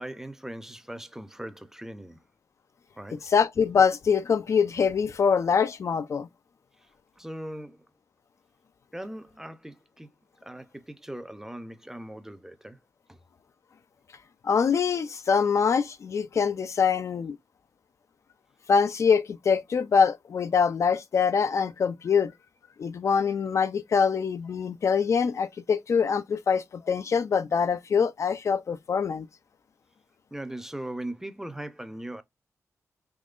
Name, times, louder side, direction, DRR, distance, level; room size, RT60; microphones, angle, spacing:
voice 1, 0.0-2.2 3.0-3.2 7.2-7.8 8.9-10.1 10.4-12.8 13.1-13.2 30.3-32.2, right 1 dB, 10° right, 0.6 m, -39 dB
voice 2, 3.3-6.3 14.4-17.4 18.7-22.3 22.8-29.3, left 6 dB, 60° left, 0.4 m, -24 dB
3.6 x 3.0 x 2.4 m
cardioid pair, 75°, 6 cm